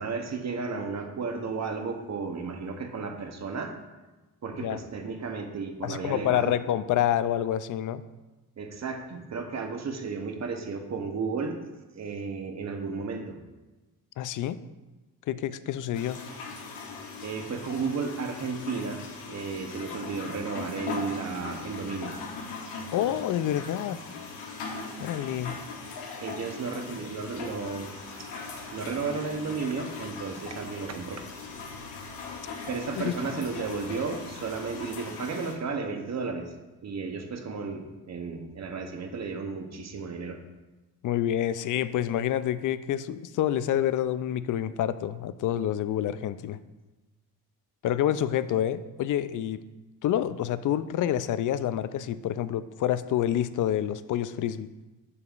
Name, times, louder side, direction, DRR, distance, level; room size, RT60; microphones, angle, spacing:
voice 1, 0.0-3.8 4.4-6.6 8.6-11.6 11.9-13.4 17.2-22.1 25.5-25.6 26.2-28.3 28.7-31.2 32.7-36.5 36.8-40.4, right 4 dB, 40° right, 5 dB, 1.0 m, -33 dB
voice 2, 5.8-8.0 14.2-14.6 15.3-16.2 22.9-24.0 25.0-25.6 33.0-33.1 41.0-46.6 47.8-49.6 50.0-54.7, left 11 dB, 55° left, 14 dB, 0.4 m, -28 dB
sound 1, 15.9-35.5, left 4 dB, 90° left, 1.0 m, -40 dB
sound 2, 27.9-34.9, right 2 dB, 70° right, 1.4 m, -52 dB
6.9 x 6.8 x 2.5 m, 1.2 s
supercardioid pair, 60°, 40 cm